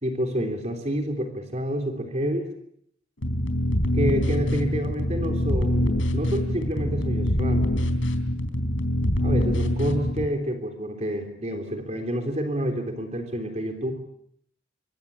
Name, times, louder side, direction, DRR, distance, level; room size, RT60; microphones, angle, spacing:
voice 1, 0.0-2.5 3.9-7.9 9.2-13.9, equal, 35° right, 5 dB, 3.5 m, -28 dB
sound 1, 3.2-10.3, left 1 dB, 80° left, 3.8 m, -24 dB
26.5 x 24.5 x 8.6 m, 0.70 s
head